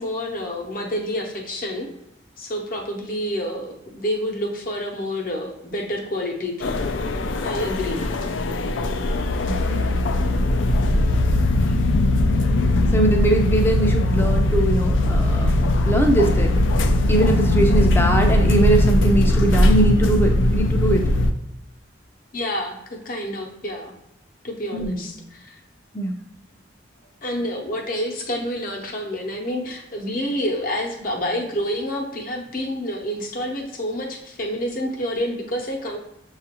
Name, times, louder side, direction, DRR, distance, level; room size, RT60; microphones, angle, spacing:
voice 1, 0.0-1.9 2.4-6.8 7.4-8.0 11.2-11.4 11.7-11.8 22.3-23.9 24.4-25.6 27.2-36.0, equal, 45° left, 1 dB, 0.7 m, -28 dB
sound 1, 6.6-21.3, left 1 dB, 80° left, 0.4 m, -19 dB
voice 2, 9.5-9.9 12.9-15.6 15.8-16.6 17.1-21.1 24.7-25.0 25.9-26.1, right 1 dB, 10° left, 2 dB, 0.5 m, -21 dB
6.7 x 2.4 x 2.9 m, 0.89 s
head